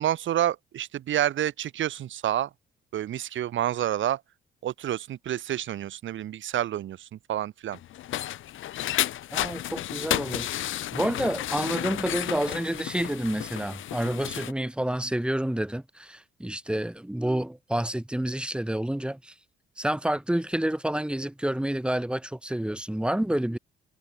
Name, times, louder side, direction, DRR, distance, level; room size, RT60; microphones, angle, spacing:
voice 1, 0.0-2.5 2.9-4.2 4.6-7.8, right 11 dB, 75° right, 6.4 m, -29 dB
sound 1, 7.7-14.5, left 13 dB, 80° left, 7.2 m, -32 dB
voice 2, 9.3-10.5 10.9-19.3 19.8-23.6, right 1 dB, 5° right, 4.1 m, -29 dB
cardioid pair, 90°, 20 cm